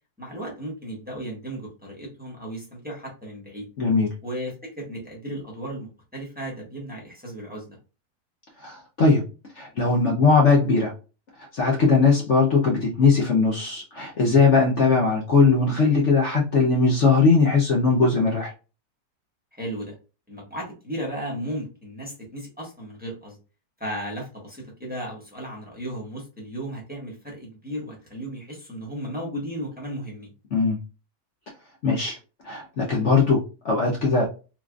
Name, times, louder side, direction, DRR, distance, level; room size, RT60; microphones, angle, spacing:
voice 1, 0.2-3.7 4.2-7.8 19.5-20.0 20.3-23.4 23.8-30.3, equal, 5° right, -3 dB, 1.3 m, -35 dB
voice 2, 3.8-4.1 8.6-9.2 9.6-10.9 11.5-18.5 30.5-30.8 31.8-32.2 32.4-34.3, left 4 dB, 55° left, -1 dB, 1.0 m, -20 dB
3.8 x 3.2 x 2.4 m, 0.32 s
omnidirectional pair, 1.6 m